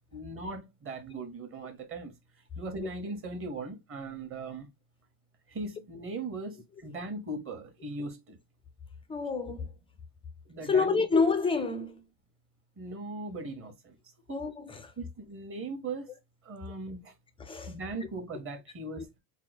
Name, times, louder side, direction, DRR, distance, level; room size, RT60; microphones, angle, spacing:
voice 1, 0.1-2.1 2.6-4.7 5.5-8.4 10.4-11.0 12.8-14.0 14.3-14.4 15.0-16.1 16.4-17.1 17.7-19.1, right 2 dB, 25° right, 1.2 m, -39 dB
voice 2, 9.1-9.7 10.6-12.0 14.3-14.9 17.4-17.7, left 4 dB, 10° left, 0.4 m, -28 dB
3.8 x 2.2 x 4.1 m
supercardioid pair, 125°, 47 cm